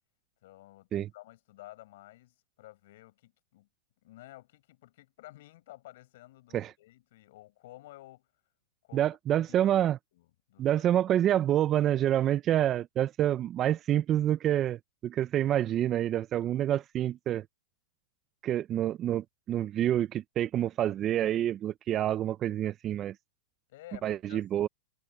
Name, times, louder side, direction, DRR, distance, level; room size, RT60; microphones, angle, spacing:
voice 1, 0.4-3.7 4.0-8.3 8.8-9.7 10.1-11.2 23.7-24.4, left 17 dB, 60° left, 5.4 m, -52 dB
voice 2, 8.9-10.0 10.6-17.4 18.4-23.1 24.0-24.7, right 11 dB, 30° right, 0.6 m, -27 dB
hypercardioid pair, 135°, 0 cm